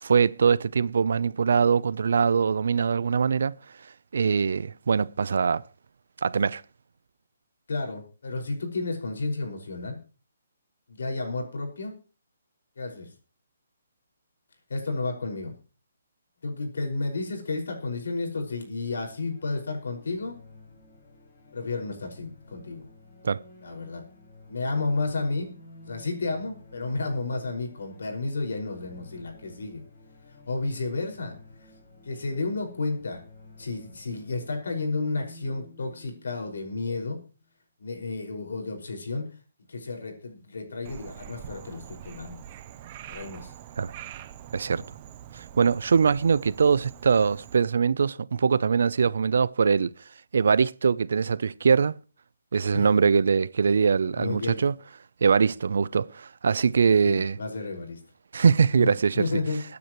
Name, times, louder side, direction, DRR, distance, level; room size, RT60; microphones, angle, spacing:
voice 1, 0.0-3.5 4.1-5.6 6.2-6.6 23.2-23.4 43.8-43.9 44.5-44.8 45.3-49.9 50.3-52.0 52.5-54.7 55.2-57.4 58.3-59.2, right 6 dB, 60° right, 0.5 m, -22 dB
voice 2, 7.7-10.0 10.9-12.0 12.8-13.1 14.7-15.5 16.4-20.4 21.5-22.9 23.6-24.0 24.5-25.5 25.8-29.8 30.5-31.3 31.6-31.7 32.0-33.2 33.6-37.2 37.8-39.3 39.7-42.4 43.1-43.5 44.6-44.8 52.7-52.9 54.2-54.6 56.9-58.0 58.8-59.6, left 3 dB, 70° left, 5.4 m, -32 dB
sound 1, 18.8-37.4, left 2 dB, 40° left, 5.8 m, -52 dB
Frog, 40.8-47.6, right 10 dB, 25° right, 0.7 m, -44 dB
23.0 x 9.6 x 3.1 m
hypercardioid pair, 170°, 0 cm